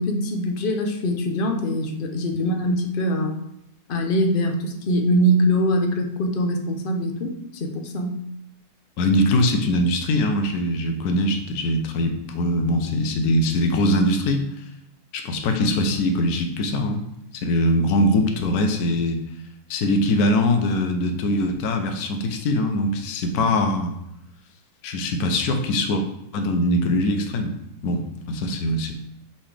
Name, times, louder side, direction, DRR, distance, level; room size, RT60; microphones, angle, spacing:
voice 1, 0.0-3.3 3.9-8.2, equal, 55° left, 4 dB, 0.6 m, -23 dB
voice 2, 9.0-14.6 15.1-17.0 17.3-19.2 19.7-23.9 24.8-26.0 26.3-27.6 27.8-28.9, left 1 dB, 70° left, 5 dB, 1.2 m, -22 dB
5.5 x 5.4 x 3.3 m, 0.82 s
omnidirectional pair, 1.8 m